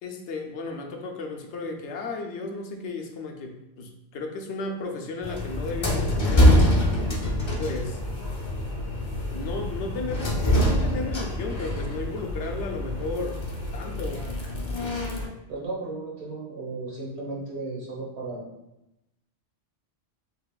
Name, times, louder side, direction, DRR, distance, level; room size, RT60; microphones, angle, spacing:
voice 1, 0.0-6.7 7.6-8.0 9.3-14.3, left 3 dB, 80° left, 3 dB, 0.9 m, -34 dB
sound 1, 5.2-15.3, left 1 dB, 30° left, 0.7 m, -25 dB
voice 2, 15.5-18.5, right 3 dB, 70° right, -3 dB, 1.4 m, -35 dB
5.8 x 3.4 x 2.2 m, 0.90 s
omnidirectional pair, 1.2 m